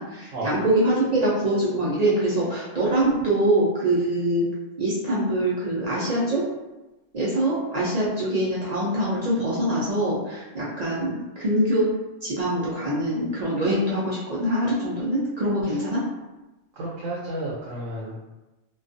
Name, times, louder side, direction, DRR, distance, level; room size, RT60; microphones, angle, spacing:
voice 1, 0.0-4.5 4.8-6.4 7.1-11.9 12.2-16.0, right 1 dB, 60° right, -6 dB, 0.4 m, -24 dB
voice 2, 16.7-18.2, right 1 dB, 85° right, -5 dB, 1.0 m, -32 dB
2.3 x 2.3 x 2.5 m, 1.0 s
omnidirectional pair, 1.3 m